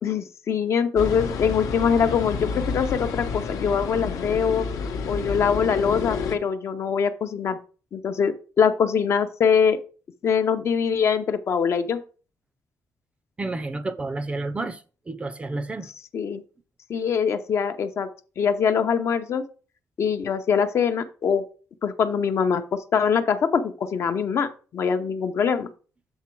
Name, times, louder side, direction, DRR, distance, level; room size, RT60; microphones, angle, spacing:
voice 1, 0.0-4.7 5.1-7.6 7.9-9.8 10.2-12.0 16.1-16.4 16.9-18.1 18.4-19.4 20.0-21.4 21.8-25.7, left 6 dB, 50° left, 0.6 m, -23 dB
sound 1, 1.0-6.4, left 5 dB, 80° left, 0.9 m, -30 dB
voice 2, 13.4-15.9, right 2 dB, 20° right, 0.4 m, -30 dB
7.3 x 3.8 x 4.5 m
cardioid pair, 155°, 6 cm